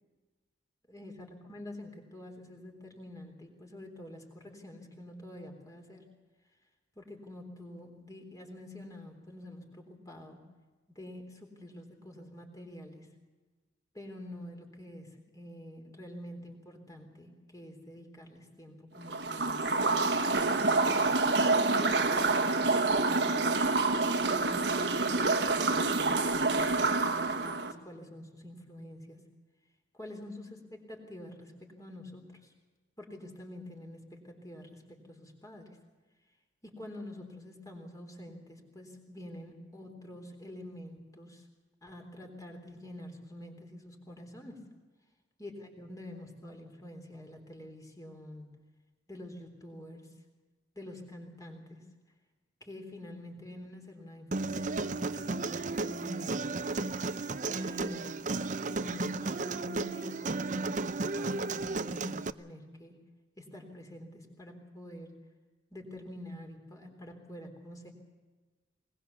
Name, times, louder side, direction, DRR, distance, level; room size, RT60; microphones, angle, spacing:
voice 1, 0.9-6.1 7.0-10.4 10.9-13.1 13.9-20.9 21.5-23.6 24.3-29.2 29.9-32.5 33.0-35.8 36.6-41.5 41.8-44.6 45.4-48.6 49.1-50.1 50.8-51.9 52.6-56.5 57.5-58.2 58.7-63.0 63.4-65.1 65.7-67.9, left 1 dB, 20° left, 3 dB, 3.7 m, -47 dB
sound 1, 19.1-27.7, right 3 dB, 70° right, 1.5 m, -27 dB
Human voice, 54.3-62.3, right 3 dB, 45° right, 0.6 m, -34 dB
21.0 x 20.5 x 7.1 m, 1.3 s
head